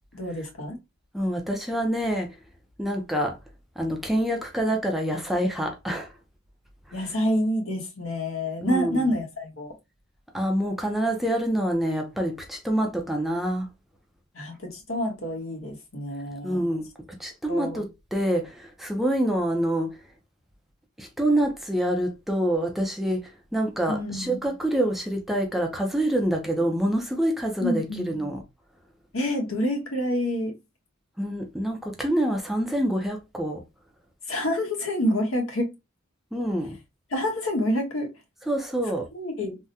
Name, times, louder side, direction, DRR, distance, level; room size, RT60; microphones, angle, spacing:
voice 1, 0.1-0.8 6.9-9.8 14.3-16.6 17.5-17.8 23.9-24.4 27.6-28.1 29.1-30.5 34.3-35.8 37.1-38.1 39.1-39.6, left 1 dB, 75° left, 1.1 m, -27 dB
voice 2, 1.1-2.4 2.8-3.4 3.8-6.1 6.9-7.1 8.6-9.1 10.3-13.7 16.4-16.9 17.2-20.1 21.0-28.4 31.2-33.6 36.3-36.8 38.4-39.1, right 1 dB, ahead, 0.5 m, -26 dB
3.5 x 2.1 x 2.7 m
head